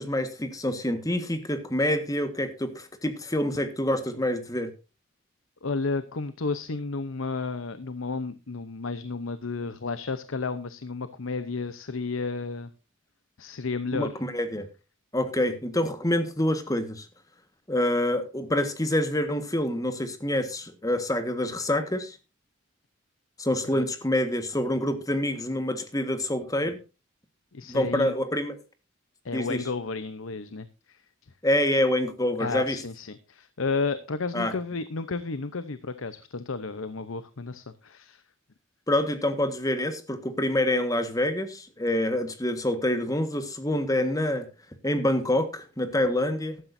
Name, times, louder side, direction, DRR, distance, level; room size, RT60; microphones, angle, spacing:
voice 1, 0.0-4.7 13.9-14.7 15.1-17.1 17.7-22.2 23.4-26.8 27.7-28.6 29.3-29.6 31.4-32.8 34.3-34.5 38.9-44.5 44.8-46.6, left 1 dB, 15° left, 9 dB, 1.5 m, -26 dB
voice 2, 5.6-12.7 13.4-14.1 23.7-23.8 27.5-28.2 29.2-31.0 32.4-38.2, left 4 dB, 80° left, 13 dB, 0.8 m, -32 dB
15.0 x 12.5 x 2.7 m, 0.30 s
head